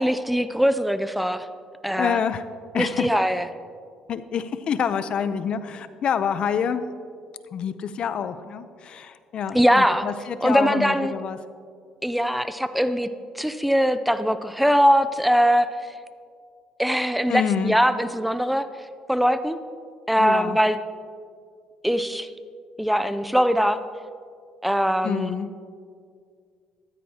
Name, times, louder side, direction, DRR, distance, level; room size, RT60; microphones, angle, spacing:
voice 1, 0.0-1.5 1.8-2.2 2.8-3.4 9.5-10.1 10.4-11.1 12.0-13.1 13.4-15.7 16.8-18.7 19.1-19.6 20.1-20.8 21.8-22.3 22.8-23.8 24.6-25.3, equal, ahead, 11 dB, 0.4 m, -21 dB
voice 2, 1.9-2.4 2.7-3.1 4.1-6.8 7.5-11.4 17.3-17.8 20.2-20.6 25.0-25.5, left 7 dB, 55° left, 12 dB, 0.6 m, -27 dB
14.0 x 13.0 x 2.9 m, 2.2 s
cardioid pair, 100°, 2 cm